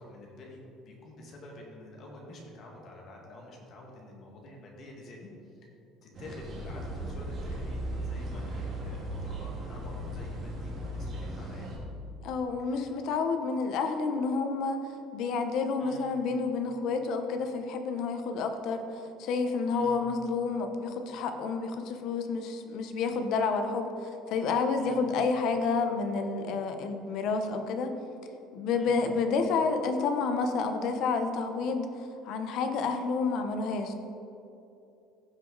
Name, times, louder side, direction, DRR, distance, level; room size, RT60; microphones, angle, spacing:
voice 1, 0.0-5.3 6.0-11.7 12.6-12.9 15.8-16.1 19.7-20.0 24.8-25.0 28.7-29.0, left 1 dB, 35° left, -1 dB, 1.8 m, -48 dB
sound 1, 6.1-11.8, right 1 dB, 35° right, 1.9 m, -37 dB
voice 2, 12.2-14.8 15.1-27.9 28.5-31.9 32.2-33.9, left 4 dB, 50° left, 6 dB, 0.8 m, -29 dB
15.0 x 6.1 x 4.0 m, 2.7 s
cardioid pair, 175°, 0 cm